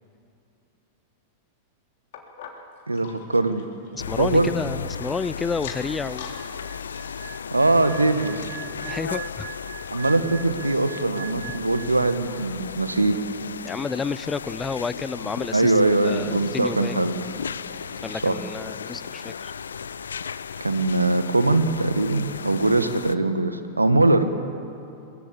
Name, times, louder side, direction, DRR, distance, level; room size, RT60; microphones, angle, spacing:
sound 1, 2.1-5.1 5.5-6.4 6.7-9.1 9.6-9.7 9.9-10.0 10.7-10.8, left 8 dB, 55° left, 3.4 m, -44 dB
voice 1, 2.9-3.6 4.2-4.5 7.5-8.5 9.9-13.2 15.5-17.2 18.2-18.4 20.6-24.2, right 2 dB, 80° right, 10 dB, 1.5 m, -21 dB
voice 2, 3.9-6.3 8.8-9.5 13.6-15.7 16.0-17.0 18.0-19.5, left 5 dB, 15° left, 18 dB, 0.6 m, -30 dB
sound 2, 4.0-23.2, left 6 dB, 70° left, 0.6 m, -36 dB
sound 3, 6.3-12.6 12.9-13.2, right 12 dB, 45° right, 1.0 m, -41 dB
22.5 x 22.0 x 8.5 m, 2.7 s
figure-of-eight pair, 95°, 0 cm